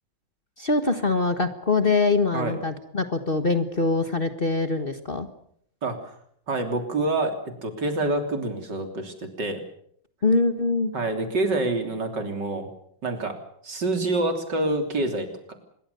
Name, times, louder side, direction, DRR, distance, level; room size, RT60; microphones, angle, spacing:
voice 1, 0.6-5.3 10.2-10.9, left 3 dB, 30° left, 8 dB, 1.6 m, -23 dB
voice 2, 6.5-9.6 10.9-12.7 13.0-13.4 13.6-15.5, right 2 dB, 65° right, 6 dB, 3.9 m, -27 dB
26.0 x 22.0 x 6.9 m, 0.68 s
omnidirectional pair, 2.0 m